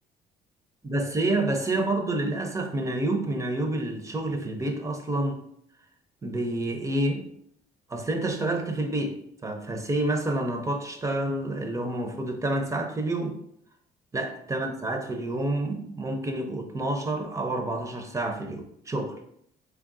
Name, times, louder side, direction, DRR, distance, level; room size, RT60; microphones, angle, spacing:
voice 1, 0.8-5.4 6.2-7.3 7.9-13.4 14.1-19.2, right 2 dB, 20° right, 5 dB, 0.6 m, -28 dB
3.6 x 3.5 x 2.5 m, 0.69 s
cardioid pair, 110°, 17 cm